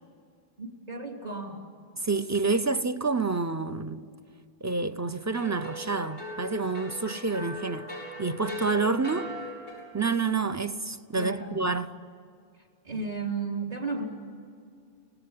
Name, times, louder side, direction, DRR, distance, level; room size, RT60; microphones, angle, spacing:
voice 1, 0.6-1.6 11.1-11.6 12.8-14.1, right 3 dB, 40° right, 3.7 m, -33 dB
voice 2, 2.0-4.1 4.6-7.9 8.2-9.3 9.9-12.0, right 4 dB, 20° right, 0.7 m, -28 dB
sound 1, 5.3-10.0, left 1 dB, 60° right, 7.2 m, -39 dB
25.5 x 18.5 x 9.8 m
omnidirectional pair, 1.0 m